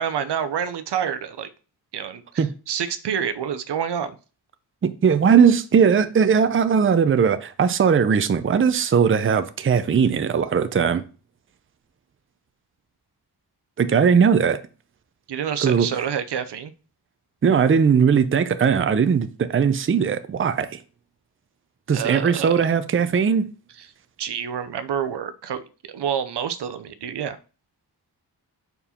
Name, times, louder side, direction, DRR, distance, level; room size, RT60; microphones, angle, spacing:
voice 1, 0.0-1.5 1.9-4.2 15.3-16.7 21.9-22.7 24.2-27.4, right 8 dB, 80° right, 0.7 m, -28 dB
voice 2, 4.8-11.0 13.8-14.6 15.6-15.9 17.4-20.8 21.9-23.5, right 6 dB, 30° right, 0.5 m, -19 dB
5.4 x 4.7 x 4.3 m
wide cardioid pair, 105°, 41 cm